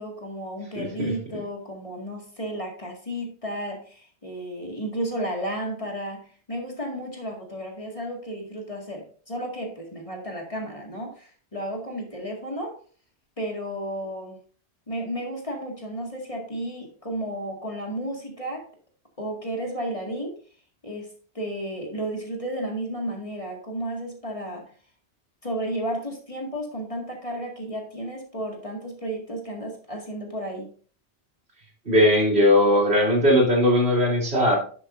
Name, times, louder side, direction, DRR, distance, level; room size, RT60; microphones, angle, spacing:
voice 1, 0.0-12.8 13.4-14.4 14.9-18.7 19.2-20.4 20.8-24.6 25.4-30.7, right 1 dB, 30° left, 0 dB, 2.1 m, -33 dB
voice 2, 0.8-1.1 31.8-34.6, left 1 dB, 65° right, -2 dB, 3.3 m, -19 dB
11.0 x 7.4 x 2.6 m, 0.42 s
omnidirectional pair, 1.2 m